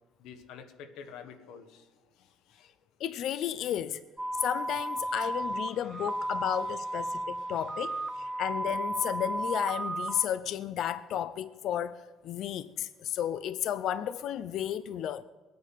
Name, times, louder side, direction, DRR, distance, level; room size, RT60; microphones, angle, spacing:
voice 1, 0.2-1.9 2.2-2.7 3.6-3.7 4.9-8.5, left 7 dB, 75° left, 1.3 m, -52 dB
voice 2, 3.0-4.0 4.4-15.2, left 10 dB, 60° left, 0.5 m, -33 dB
sound 1, 4.2-10.3, right 1 dB, 10° right, 0.6 m, -34 dB
21.5 x 9.4 x 5.8 m
cardioid pair, 140°, 0 cm